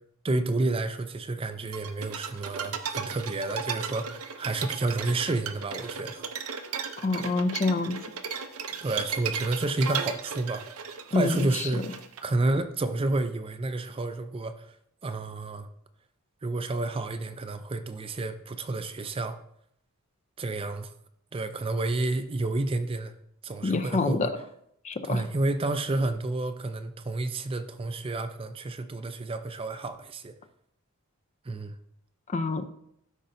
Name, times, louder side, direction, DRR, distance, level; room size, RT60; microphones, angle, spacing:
voice 1, 0.2-6.2 8.8-10.7 11.1-12.0 12.2-14.8 15.0-15.7 16.4-19.4 20.4-20.9 21.3-23.1 23.4-24.3 25.0-30.3 31.4-31.7, right 2 dB, 25° right, 0.4 m, -30 dB
sound 1, 1.7-12.2, right 6 dB, 70° right, 0.7 m, -35 dB
voice 2, 7.0-8.0 11.1-11.7 23.6-24.3 24.8-25.2 32.3-32.7, left 3 dB, 35° left, 0.5 m, -27 dB
13.0 x 5.3 x 2.6 m
head